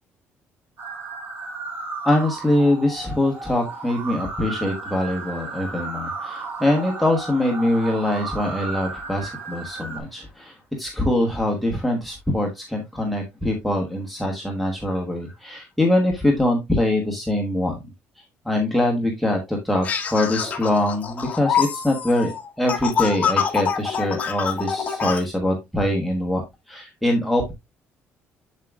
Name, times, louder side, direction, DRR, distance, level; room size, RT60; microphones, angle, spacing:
sound 1, 0.8-10.0, right 4 dB, 50° right, 3.0 m, -34 dB
voice 1, 2.0-17.8 18.2-26.4 26.7-27.5, left 1 dB, ahead, 0 dB, 1.3 m, -23 dB
sound 2, 19.8-25.2, left 7 dB, 30° left, 1.4 m, -25 dB
7.5 x 7.4 x 2.4 m, 0.21 s
cardioid pair, 150°, 5 cm